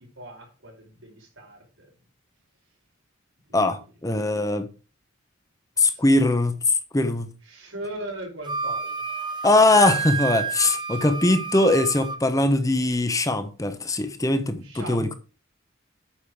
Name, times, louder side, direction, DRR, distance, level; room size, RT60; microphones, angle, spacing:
voice 1, 0.0-1.9 3.5-3.9 5.9-6.0 7.4-9.0 14.6-15.2, right 1 dB, 80° right, 4.8 m, -39 dB
voice 2, 3.5-4.7 5.8-6.6 6.9-7.3 9.4-15.1, left 2 dB, 15° left, 1.0 m, -21 dB
Wind instrument woodwind instrument, 8.4-12.2, right 6 dB, 20° right, 0.8 m, -30 dB
8.8 x 6.5 x 4.9 m
head